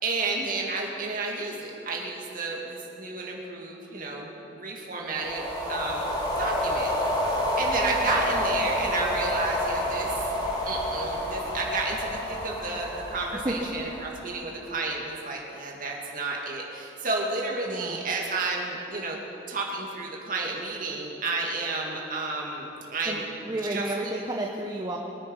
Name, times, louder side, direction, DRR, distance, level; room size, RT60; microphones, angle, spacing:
voice 1, 0.0-6.9 7.6-10.1 10.7-19.2 19.5-23.3 23.7-23.8, right 3 dB, 50° right, -1 dB, 2.5 m, -31 dB
sound 1, 5.1-14.5, left 1 dB, 20° left, 2.2 m, -29 dB
voice 2, 17.6-18.0 23.0-25.0, right 1 dB, 20° right, -1 dB, 0.9 m, -31 dB
23.5 x 9.6 x 5.6 m, 3.0 s
head